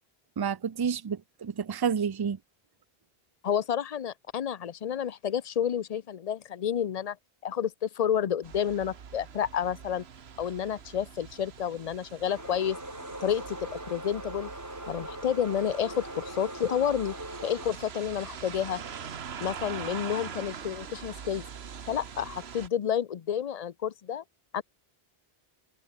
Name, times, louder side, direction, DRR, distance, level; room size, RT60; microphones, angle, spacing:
voice 1, 0.4-2.4, right 7 dB, 35° right, 0.4 m, -29 dB
voice 2, 3.4-7.2 7.4-10.0 10.4-12.8 13.2-13.6 13.9-14.5 14.9-17.1 17.4-18.8 19.4-21.4 21.9-24.2 24.5-24.6, left 9 dB, 45° left, 0.6 m, -30 dB
sound 1, 8.4-22.7, right 7 dB, 80° right, 1.4 m, -43 dB
sound 2, 12.3-17.7, right 1 dB, 15° right, 4.0 m, -41 dB
omnidirectional pair, 1.0 m